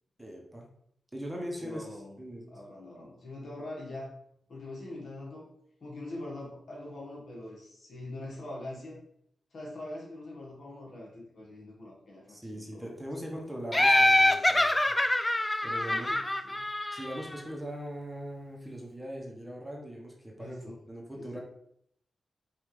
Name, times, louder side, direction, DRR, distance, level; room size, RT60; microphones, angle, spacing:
voice 1, 0.2-0.7 1.1-2.5 12.3-15.0 15.6-16.1 16.9-21.4, equal, 10° right, -1 dB, 1.0 m, -40 dB
voice 2, 1.6-2.2 2.5-4.1 4.5-5.5 5.8-9.0 9.5-13.6 15.9-16.6 20.3-20.8 21.1-21.4, left 1 dB, 65° left, -3 dB, 1.6 m, -43 dB
Laughter, 13.7-17.4, left 1 dB, 15° left, 0.3 m, -25 dB
5.2 x 2.7 x 3.2 m, 0.71 s
cardioid pair, 70°, 0 cm